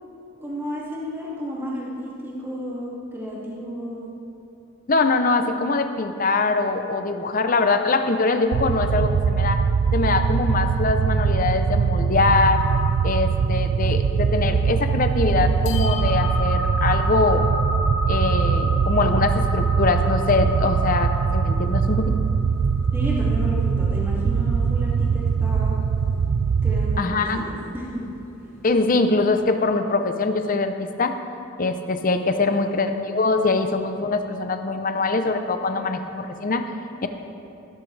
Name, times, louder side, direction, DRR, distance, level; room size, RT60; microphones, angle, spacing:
voice 1, 0.4-4.1 22.9-25.8 26.6-28.0 32.5-33.5, equal, 10° right, -6 dB, 2.3 m, -32 dB
voice 2, 4.9-9.6 9.9-12.6 13.0-17.4 18.1-22.1 27.0-27.4 28.6-31.1 31.6-36.6 37.0-37.1, left 3 dB, 40° left, 7 dB, 0.6 m, -23 dB
sound 1, 8.5-27.0, right 6 dB, 75° right, 0.4 m, -22 dB
sound 2, 12.5-28.9, left 1 dB, 60° left, 2.1 m, -34 dB
16.0 x 13.5 x 3.3 m, 2.7 s
head